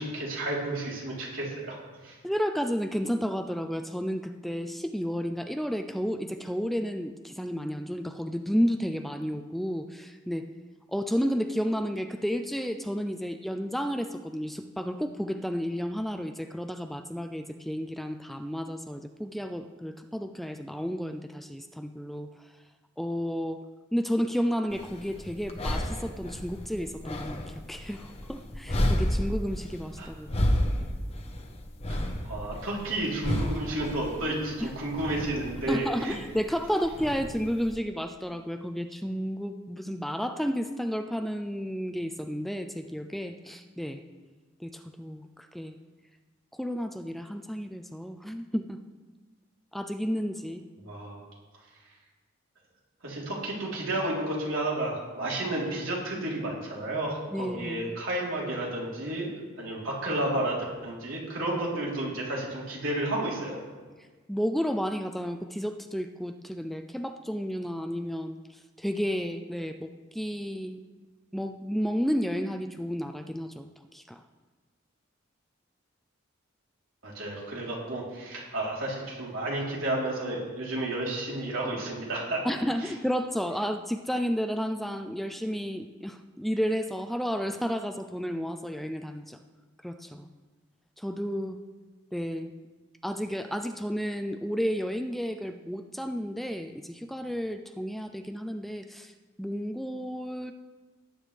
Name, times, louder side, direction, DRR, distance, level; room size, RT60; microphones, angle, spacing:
voice 1, 0.0-2.2 30.0-30.1 31.9-36.1 50.8-51.2 53.0-59.3 59.6-60.6 60.8-63.6 77.0-82.4, right 1 dB, 85° right, -4 dB, 3.6 m, -31 dB
voice 2, 2.2-10.5 10.9-22.3 23.0-23.6 23.9-30.5 34.6-34.7 35.7-44.0 44.6-45.8 46.5-48.8 49.7-50.6 57.3-57.9 64.3-70.8 71.3-74.2 82.4-89.4 89.8-90.3 91.0-91.6 92.1-92.5 93.0-99.1 99.4-100.5, equal, ahead, 6 dB, 0.4 m, -32 dB
sound 1, 24.7-37.8, left 1 dB, 30° left, 1.0 m, -32 dB
18.5 x 9.3 x 3.4 m, 1.3 s
head